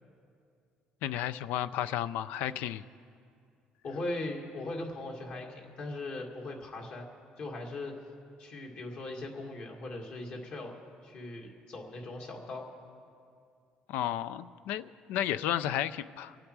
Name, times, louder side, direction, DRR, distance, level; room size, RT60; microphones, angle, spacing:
voice 1, 1.0-2.8 13.9-16.4, left 11 dB, 85° left, 15 dB, 0.4 m, -33 dB
voice 2, 3.8-7.1 7.4-7.9 8.4-10.7 11.0-12.6, left 2 dB, 55° left, 1 dB, 2.1 m, -39 dB
25.0 x 8.8 x 4.7 m, 2.4 s
cardioid pair, 130°, 3 cm